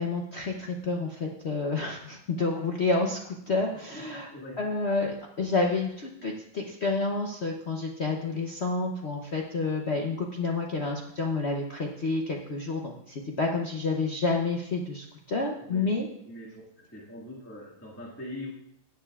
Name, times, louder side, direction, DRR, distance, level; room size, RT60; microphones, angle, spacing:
voice 1, 0.0-4.3 4.6-16.1, left 3 dB, 60° left, 1 dB, 0.6 m, -29 dB
voice 2, 3.9-4.6 15.6-15.9 16.2-16.5 16.8-18.5, left 1 dB, 5° left, -5 dB, 1.5 m, -42 dB
17.0 x 7.8 x 2.4 m, 0.73 s
omnidirectional pair, 2.3 m